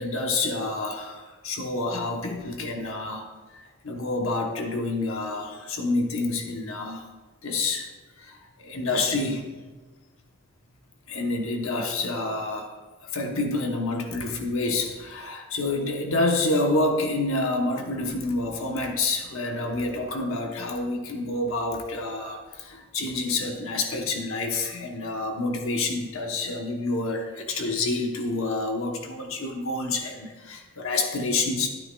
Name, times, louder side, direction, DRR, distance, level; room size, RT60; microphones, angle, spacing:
voice 1, 0.0-7.1 7.4-7.9 8.2-9.5 11.1-12.7 13.0-31.7, left 2 dB, 70° left, 2 dB, 1.1 m, -28 dB
11.5 x 9.5 x 2.4 m, 1.3 s
head